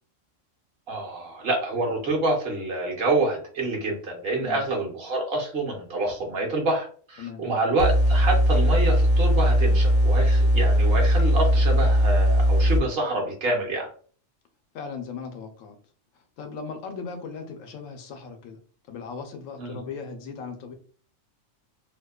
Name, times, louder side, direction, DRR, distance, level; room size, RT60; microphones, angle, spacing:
voice 1, 0.9-13.9 19.6-19.8, right 2 dB, 55° right, 0 dB, 0.9 m, -27 dB
sound 1, 7.8-12.8, equal, 65° left, 0.4 m, -19 dB
voice 2, 14.7-15.8 16.1-18.6 18.9-20.7, left 5 dB, 85° left, 6 dB, 1.0 m, -38 dB
2.7 x 2.1 x 2.3 m, 0.43 s
omnidirectional pair, 1.3 m